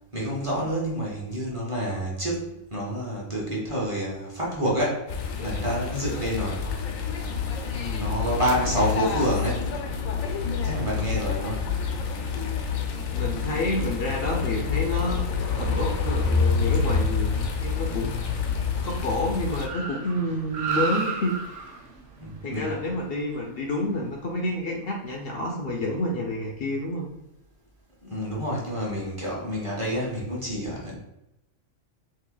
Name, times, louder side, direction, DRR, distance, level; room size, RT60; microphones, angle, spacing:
voice 1, 0.1-6.6 8.0-9.6 10.6-11.7 22.2-22.7 28.0-31.0, right 1 dB, 30° right, -5 dB, 0.8 m, -28 dB
sound 1, 5.1-19.7, left 5 dB, 90° left, 1.0 m, -27 dB
voice 2, 7.7-8.1 13.1-15.2 15.6-17.3 17.6-18.3 18.8-21.6 22.4-27.1, left 1 dB, 65° left, 0 dB, 0.6 m, -29 dB
Car, 14.8-24.3, right 4 dB, 65° right, 1.0 m, -37 dB
2.8 x 2.6 x 3.8 m, 0.86 s
omnidirectional pair, 1.4 m